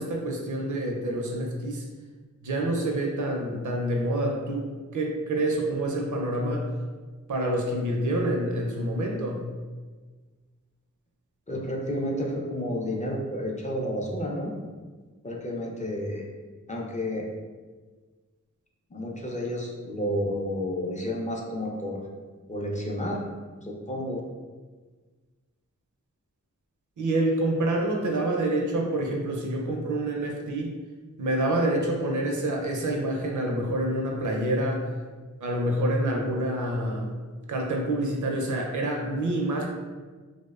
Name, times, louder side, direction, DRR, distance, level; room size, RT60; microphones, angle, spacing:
voice 1, 0.0-1.8 2.4-4.7 4.9-6.6 7.3-9.5 27.0-30.7 31.2-34.9 35.4-37.1 37.5-39.7, right 1 dB, 70° right, 0 dB, 0.5 m, -27 dB
voice 2, 11.5-14.5 15.2-16.3 16.7-17.3 18.9-22.0 22.5-23.2 23.6-24.2, left 1 dB, 25° left, -2 dB, 0.4 m, -31 dB
2.6 x 2.1 x 2.3 m, 1.4 s
wide cardioid pair, 55°, 31 cm